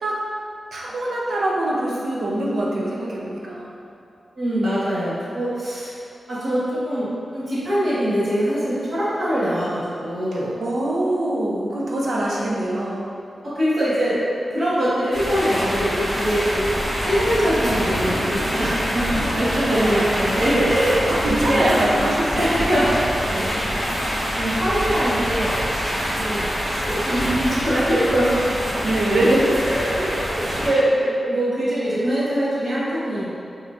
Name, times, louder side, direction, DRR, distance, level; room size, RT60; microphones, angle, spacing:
voice 1, 0.7-3.8 10.3-13.1 19.7-20.1 21.1-22.8 23.3-23.5 28.8-29.6 30.0-30.1, right 1 dB, 75° right, -3 dB, 0.6 m, -23 dB
voice 2, 4.4-5.9 6.3-10.5 12.2-12.3 13.4-14.2 14.5-16.7 17.0-21.7 22.3-23.0 23.4-23.7 24.4-25.6 26.1-26.5 26.8-28.4 29.4-33.3, equal, 50° right, -11 dB, 1.5 m, -23 dB
sound 1, 15.1-30.7, equal, 25° right, 1.4 m, -25 dB
5.5 x 3.1 x 2.5 m, 2.5 s
wide cardioid pair, 150°, 0 cm